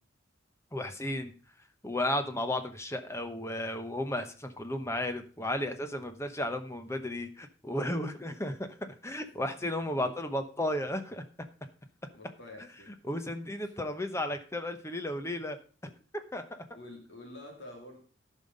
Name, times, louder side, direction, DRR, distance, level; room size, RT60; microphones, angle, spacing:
voice 1, 0.7-1.3 1.8-11.2 13.0-15.6 16.1-16.6, left 1 dB, 15° left, 8 dB, 0.8 m, -34 dB
voice 2, 9.8-10.1 12.1-12.9 13.6-13.8 16.7-18.0, left 2 dB, 60° left, 1 dB, 2.6 m, -49 dB
13.0 x 5.6 x 5.1 m, 0.37 s
head